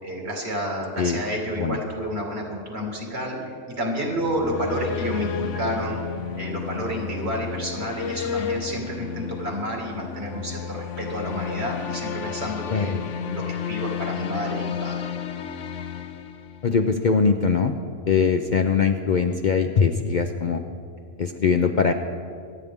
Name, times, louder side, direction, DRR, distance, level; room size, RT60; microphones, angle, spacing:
voice 1, 0.0-6.0 6.3-15.0, equal, 60° right, 0 dB, 2.4 m, -30 dB
sound 1, 4.1-17.0, left 7 dB, 75° left, 1.0 m, -32 dB
voice 2, 16.6-17.7 18.1-20.6 21.2-21.9, left 5 dB, 50° left, 6 dB, 0.6 m, -21 dB
25.0 x 9.2 x 3.6 m, 2.2 s
omnidirectional pair, 1.3 m